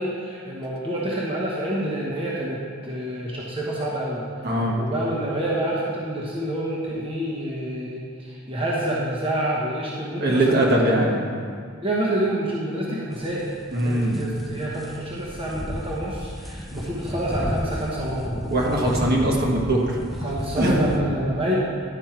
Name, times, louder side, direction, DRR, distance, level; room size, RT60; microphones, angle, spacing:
voice 1, 0.0-4.2 4.8-11.2 11.8-13.5 13.8-18.4 20.2-21.6, right 1 dB, 25° right, -6 dB, 1.1 m, -27 dB
voice 2, 4.4-4.8 10.2-11.2 13.7-14.2 18.5-19.9 20.6-20.8, right 1 dB, 50° right, -2 dB, 1.4 m, -21 dB
sound 1, 13.1-21.0, equal, ahead, 0.5 m, -34 dB
11.0 x 5.4 x 4.5 m, 2.2 s
head